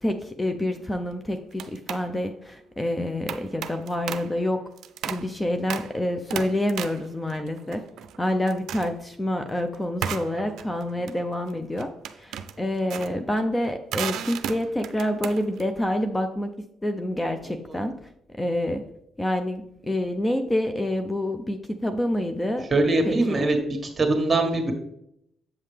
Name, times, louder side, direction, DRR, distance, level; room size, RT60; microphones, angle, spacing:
voice 1, 0.0-4.6 5.1-7.8 8.2-16.5 16.8-18.1 18.4-18.9 19.2-22.7 23.1-23.5, left 1 dB, 15° left, 7 dB, 0.5 m, -27 dB
sound 1, 0.7-1.0 1.5-2.1 3.3-4.4 4.8-5.3 5.7-6.0 6.3-8.2 8.5-9.0 10.0-15.6, right 9 dB, 80° right, 0.4 m, -35 dB
voice 2, 17.4-17.8 22.7-23.6 24.0-24.7, right 2 dB, 30° right, 3 dB, 1.6 m, -22 dB
7.7 x 5.5 x 3.3 m, 0.75 s
cardioid pair, 90°, 0 cm